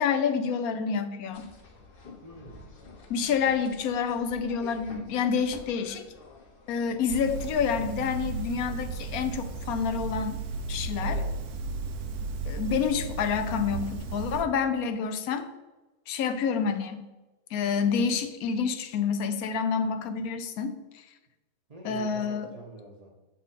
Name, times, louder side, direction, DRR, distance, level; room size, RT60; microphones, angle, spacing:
voice 1, 0.0-1.5 3.1-6.1 6.7-10.4 10.7-11.2 12.4-15.5 16.1-17.1 17.5-21.0 21.8-22.5, left 6 dB, 80° left, 8 dB, 1.1 m, -28 dB
sound 1, 1.3-8.7, left 3 dB, 45° left, 0.9 m, -50 dB
voice 2, 2.2-2.7 11.0-11.3 21.7-23.1, right 1 dB, 35° right, -1 dB, 0.7 m, -44 dB
sound 2, 7.1-14.4, right 3 dB, 85° right, 1.1 m, -34 dB
6.2 x 4.2 x 4.1 m, 1.1 s
omnidirectional pair, 1.5 m